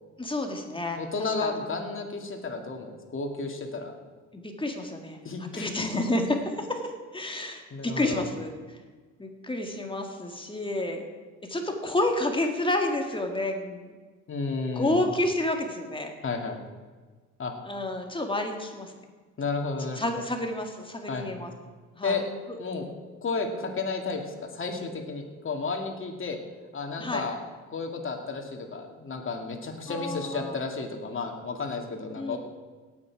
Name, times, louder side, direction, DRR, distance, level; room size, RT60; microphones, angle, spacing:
voice 1, 0.2-1.5 4.3-5.2 5.5-8.8 9.2-11.1 11.5-13.9 14.7-16.1 17.7-18.9 20.0-21.5 22.0-22.2 27.0-27.3 29.9-30.6 32.2-32.4, left 1 dB, 15° left, 3 dB, 2.0 m, -30 dB
voice 2, 1.0-3.9 5.2-5.7 7.4-7.5 7.7-8.3 14.3-15.0 16.2-16.6 17.4-17.5 19.4-20.0 21.1-21.4 22.0-22.2 22.6-22.8 23.2-26.4 26.7-27.4 27.7-32.4, left 4 dB, 40° left, 3 dB, 2.4 m, -32 dB
18.0 x 8.7 x 4.8 m, 1.4 s
cardioid pair, 90°, 30 cm